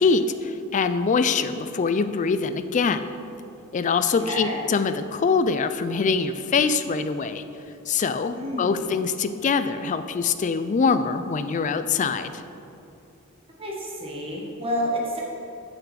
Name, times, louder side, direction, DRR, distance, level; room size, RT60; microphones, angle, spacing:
voice 1, 0.0-3.1 3.7-7.4 7.9-12.4, left 5 dB, 35° left, 10 dB, 0.3 m, -24 dB
voice 2, 4.3-4.6 8.3-8.9 13.6-15.2, equal, 25° right, -3 dB, 1.6 m, -29 dB
6.5 x 6.0 x 6.2 m, 2.7 s
head